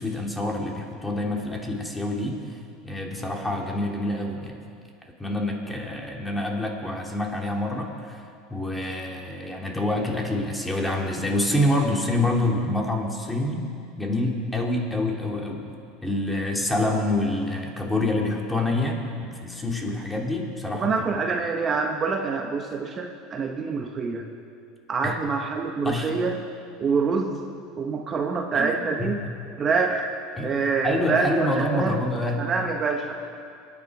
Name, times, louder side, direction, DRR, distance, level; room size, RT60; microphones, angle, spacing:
voice 1, 0.0-2.6 2.8-4.6 5.2-8.2 8.5-13.7 14.0-15.7 16.0-20.9 25.0-25.2 25.8-26.1 28.5-28.7 29.0-29.1 30.4-30.5 30.8-32.4, left 1 dB, 10° left, 0 dB, 2.7 m, -27 dB
voice 2, 20.8-24.2 24.9-26.4 26.8-27.4 27.8-29.2 29.6-30.1 30.4-32.0 32.4-33.2, right 4 dB, 35° right, 3 dB, 1.2 m, -26 dB
23.5 x 9.9 x 4.9 m, 2.4 s
hypercardioid pair, 90°, 0 cm